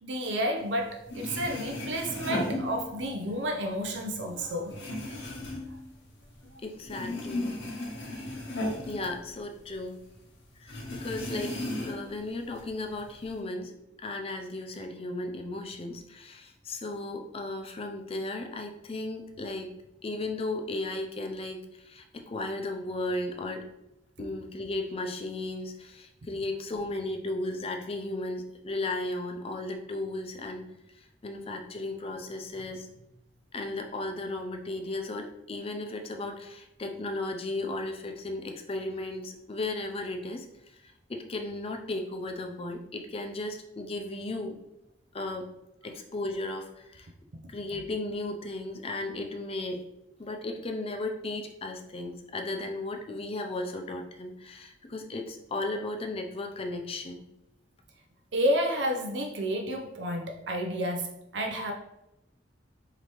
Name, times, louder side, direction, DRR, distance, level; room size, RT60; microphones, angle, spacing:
voice 1, 0.0-4.9 58.3-61.7, equal, 75° right, 3 dB, 0.6 m, -30 dB
sound 1, 0.8-0.9 1.1-3.3 3.6-6.6 6.8-9.8 10.1-10.2 10.7-12.2 12.5-13.3, left 1 dB, 85° left, 1.2 m, -35 dB
voice 2, 6.6-7.6 8.8-10.0 10.6-11.5 11.8-13.8 14.0-19.7 20.0-23.7 24.2-30.7 30.9-33.0 33.5-44.6 45.1-45.5 45.8-47.1 47.5-49.8 50.2-57.2, left 2 dB, 35° left, 4 dB, 0.5 m, -35 dB
5.0 x 2.8 x 3.1 m, 0.88 s
head